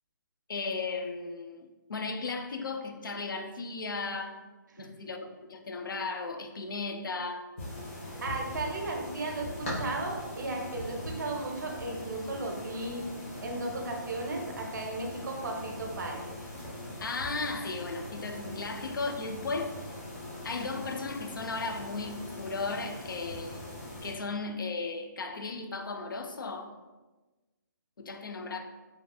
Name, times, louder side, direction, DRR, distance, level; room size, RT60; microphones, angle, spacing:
voice 1, 0.5-4.4 4.8-7.5 17.0-19.7 20.4-23.6 24.0-26.7 28.0-28.6, left 3 dB, 85° left, 6 dB, 0.4 m, -35 dB
sound 1, 7.6-24.1, left 1 dB, 35° left, 1.0 m, -41 dB
voice 2, 8.2-13.0 13.4-16.2, right 2 dB, 65° right, 1 dB, 0.7 m, -35 dB
3.2 x 2.7 x 2.3 m, 1.2 s
hypercardioid pair, 155°, 11 cm